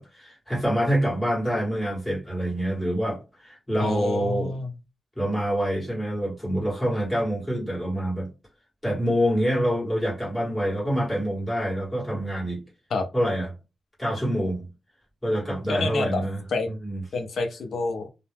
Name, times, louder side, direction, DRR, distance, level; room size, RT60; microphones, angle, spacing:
voice 1, 0.0-4.5 5.1-8.3 8.8-12.6 13.1-13.5 14.0-14.7 15.2-16.4 16.7-17.0, equal, 10° left, 1.6 m, -26 dB
voice 2, 3.8-4.7 12.9-13.1 15.7-16.2 16.5-16.7 17.1-18.1, left 3 dB, 70° left, 0.5 m, -28 dB
2.7 x 2.0 x 3.4 m
wide cardioid pair, 155°, 0 cm